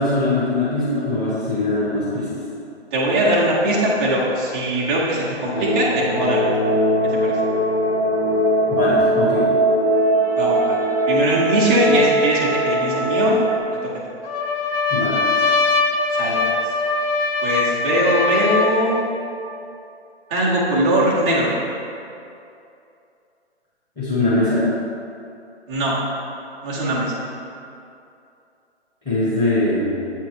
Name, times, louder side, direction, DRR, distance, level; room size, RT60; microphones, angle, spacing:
voice 1, 0.0-2.3 8.7-9.5 14.9-15.2 24.0-24.7 29.0-30.1, left 2 dB, 15° left, -11 dB, 1.5 m, -21 dB
voice 2, 2.9-6.5 7.2-7.3 10.4-10.8 11.1-13.4 16.1-16.7 17.4-19.0 20.3-21.5 25.7-26.0 26.6-27.1, right 1 dB, 5° right, -7 dB, 0.4 m, -20 dB
sound 1, 5.5-13.6, equal, 85° left, 1.2 m, -20 dB
Trumpet, 14.2-19.1, left 3 dB, 55° left, 0.9 m, -21 dB
8.1 x 4.6 x 4.8 m, 2.7 s
figure-of-eight pair, 135°, 34 cm